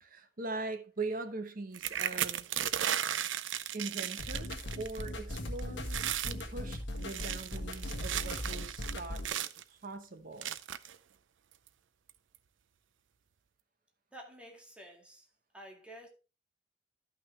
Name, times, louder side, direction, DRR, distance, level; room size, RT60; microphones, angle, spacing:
voice 1, 0.0-2.5 3.7-9.3 9.7-10.6, right 3 dB, 50° right, 1.1 m, -41 dB
sound 1, 1.7-5.1 5.4-5.6 5.9-6.4 7.0-9.6 10.4-11.0 11.7-11.8 12.1-12.4, right 10 dB, 85° right, 0.5 m, -35 dB
sound 2, 4.2-9.3, left 1 dB, 75° left, 1.7 m, -39 dB
voice 2, 14.1-15.3 15.5-16.1, right 1 dB, 5° right, 2.1 m, -50 dB
12.5 x 6.0 x 3.3 m
head